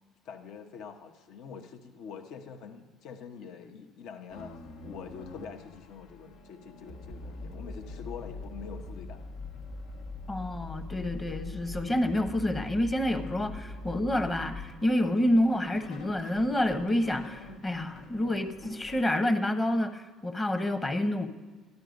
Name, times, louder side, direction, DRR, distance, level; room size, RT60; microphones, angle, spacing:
voice 1, 0.2-4.5 4.8-9.2, left 6 dB, 65° left, 5 dB, 1.0 m, -45 dB
sound 1, 4.3-19.1, left 2 dB, 85° left, 1.4 m, -43 dB
voice 2, 10.3-21.3, left 1 dB, 15° left, 7 dB, 1.0 m, -28 dB
13.5 x 11.0 x 5.1 m, 1.4 s
cardioid pair, 145°, 0 cm